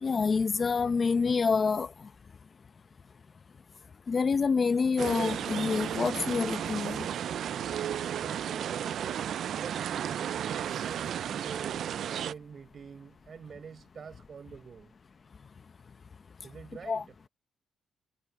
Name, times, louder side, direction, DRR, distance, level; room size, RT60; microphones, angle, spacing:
voice 1, 0.0-1.9 4.1-7.1 16.9-17.0, left 5 dB, 40° left, 0.9 m, -27 dB
sound 1, 5.0-12.3, right 9 dB, 65° right, 0.4 m, -33 dB
voice 2, 8.2-10.4 10.8-14.9 16.4-17.1, right 6 dB, 45° right, 6.3 m, -46 dB
cardioid pair, 90°, 0 cm